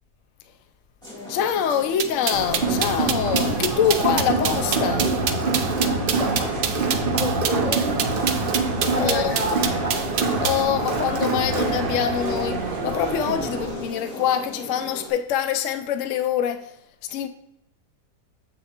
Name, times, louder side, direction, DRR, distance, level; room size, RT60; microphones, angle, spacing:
sound 1, 1.0-15.1, left 1 dB, 5° left, 1.9 m, -38 dB
voice 1, 1.3-5.2 9.0-9.4 10.4-16.7 17.1-17.3, left 9 dB, 70° left, 0.7 m, -25 dB
sound 2, 2.0-10.6, right 8 dB, 80° right, 0.5 m, -26 dB
Crowd, 2.3-13.9, right 3 dB, 45° right, 0.7 m, -25 dB
voice 2, 6.1-6.7 7.1-7.9 8.9-10.0, left 1 dB, 40° left, 0.5 m, -29 dB
7.3 x 6.6 x 2.9 m
omnidirectional pair, 1.8 m